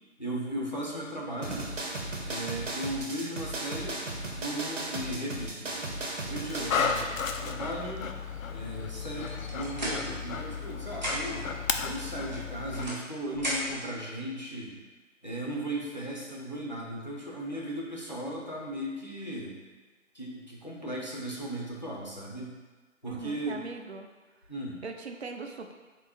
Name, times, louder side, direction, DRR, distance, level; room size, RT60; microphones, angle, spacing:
voice 1, 0.2-1.7 2.3-4.0 4.3-7.1 7.4-8.0 8.5-11.5 11.8-14.8 15.2-19.6 20.1-22.5 23.0-23.6 24.5-24.8, right 1 dB, 35° left, -4 dB, 0.5 m, -36 dB
sound 1, 1.4-7.1, right 2 dB, 70° right, 1.0 m, -36 dB
Dog, 6.5-12.9, left 6 dB, 90° left, 0.5 m, -34 dB
sound 2, 9.3-10.6 10.9-11.5 12.3-13.9, equal, 35° right, 0.8 m, -35 dB
voice 2, 23.0-24.1 24.8-25.7, right 4 dB, 55° right, 5 dB, 0.4 m, -40 dB
3.6 x 2.8 x 4.1 m, 1.3 s
figure-of-eight pair, 175°, 39 cm